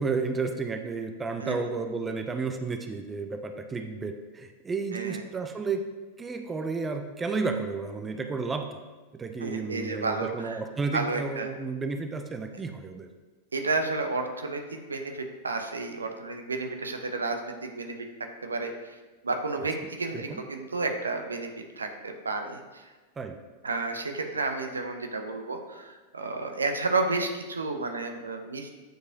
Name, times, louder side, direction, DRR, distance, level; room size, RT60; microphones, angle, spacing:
voice 1, 0.0-5.8 6.2-8.7 9.1-13.1 20.1-20.4 23.2-23.4, right 4 dB, 15° right, 6 dB, 0.5 m, -32 dB
voice 2, 4.9-5.2 9.4-10.6 10.9-11.5 13.5-18.1 18.4-19.0 19.2-22.9 23.6-28.7, right 3 dB, 75° right, 5 dB, 0.6 m, -31 dB
9.0 x 4.7 x 2.8 m, 1.2 s
figure-of-eight pair, 90°, 0 cm